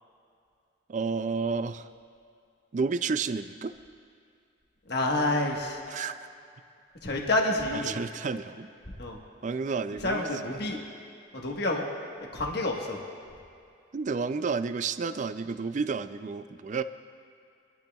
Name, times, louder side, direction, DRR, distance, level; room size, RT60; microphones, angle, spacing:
voice 1, 0.9-1.9 2.7-3.7 5.9-6.3 7.7-8.7 9.4-10.8 13.9-16.8, right 5 dB, 35° right, 12 dB, 0.3 m, -31 dB
voice 2, 4.9-5.8 7.0-7.9 9.0-9.2 10.0-10.8 11.3-11.8 12.3-13.0, left 2 dB, 55° left, 0 dB, 1.3 m, -28 dB
23.5 x 12.0 x 2.3 m, 2.4 s
head